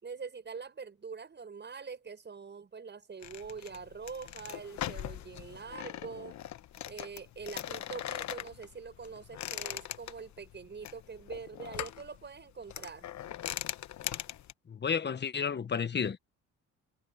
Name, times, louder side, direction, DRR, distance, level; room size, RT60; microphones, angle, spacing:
voice 1, 0.0-6.4 6.9-13.1, right 5 dB, 35° right, 6.9 m, -44 dB
sound 1, 3.2-14.5, left 12 dB, 65° left, 1.1 m, -41 dB
voice 2, 14.7-16.2, left 6 dB, 35° left, 1.2 m, -31 dB
cardioid pair, 90°, 30 cm